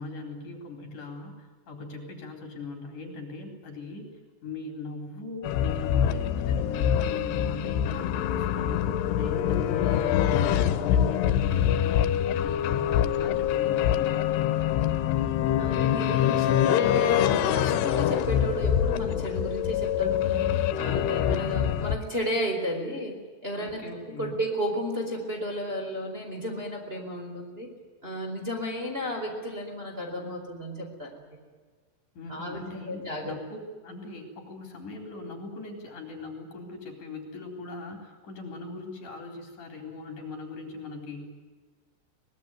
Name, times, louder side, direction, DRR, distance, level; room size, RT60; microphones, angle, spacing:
voice 1, 0.0-4.1 4.4-14.3 23.5-24.4 32.2-41.3, left 3 dB, 50° left, 4 dB, 5.3 m, -40 dB
sound 1, 5.4-22.0, left 10 dB, 80° left, 3.1 m, -25 dB
voice 2, 15.6-20.4 20.8-23.2 23.4-27.7 28.0-31.1 32.3-32.6 32.9-33.4, equal, 15° right, 0 dB, 4.4 m, -33 dB
24.5 x 20.0 x 9.5 m, 1.4 s
omnidirectional pair, 4.8 m